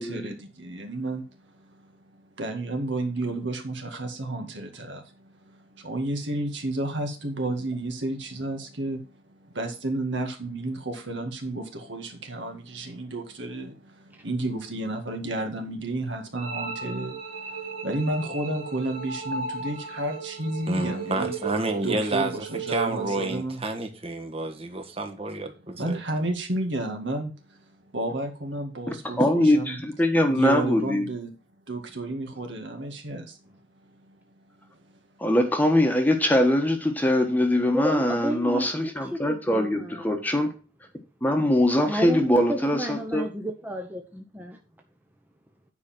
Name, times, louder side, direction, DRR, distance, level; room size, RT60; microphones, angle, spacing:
voice 1, 0.0-1.9 2.4-9.0 9.3-21.3 21.8-23.6 25.8-27.3 27.9-29.8 30.3-31.3 31.7-33.4 34.1-34.2, right 2 dB, 65° right, 2.0 m, -32 dB
sound 1, 16.4-23.3, right 5 dB, 45° right, 2.3 m, -35 dB
voice 2, 20.6-26.0, right 2 dB, 30° right, 1.4 m, -30 dB
voice 3, 28.9-31.1 35.2-40.5 41.2-43.2, left 1 dB, 10° left, 1.3 m, -22 dB
voice 4, 37.7-40.2 41.9-44.6, equal, 10° right, 0.8 m, -32 dB
9.5 x 5.0 x 5.9 m
head